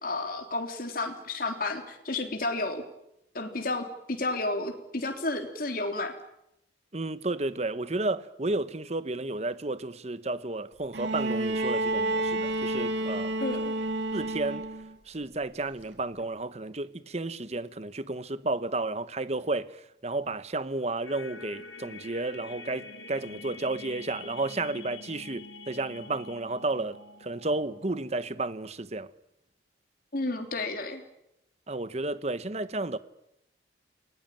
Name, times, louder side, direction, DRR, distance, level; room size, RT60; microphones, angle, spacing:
voice 1, 0.0-2.8 3.3-6.1 13.4-13.7 30.1-31.0, left 2 dB, 50° left, 3.4 m, -31 dB
voice 2, 6.9-13.4 14.1-14.7 15.1-29.1 31.7-33.0, right 2 dB, 35° right, 1.0 m, -32 dB
Bowed string instrument, 10.9-15.0 16.2-16.3, right 1 dB, 80° right, 3.0 m, -30 dB
sound 1, 21.0-28.3, left 3 dB, 85° left, 2.4 m, -46 dB
29.0 x 19.5 x 9.0 m
head